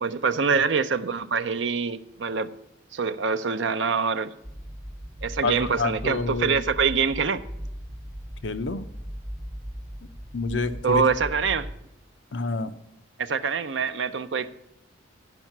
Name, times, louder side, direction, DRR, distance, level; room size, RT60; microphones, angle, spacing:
voice 1, 0.0-2.5 2.9-4.3 5.2-7.4 10.8-11.7 13.2-14.5, right 5 dB, 70° right, 11 dB, 0.6 m, -25 dB
sound 1, 4.4-11.7, equal, 15° right, 1.5 m, -38 dB
voice 2, 5.4-6.6 8.4-8.8 10.3-11.0 12.3-12.7, left 3 dB, 70° left, 11 dB, 0.6 m, -28 dB
10.5 x 5.5 x 6.0 m, 0.83 s
head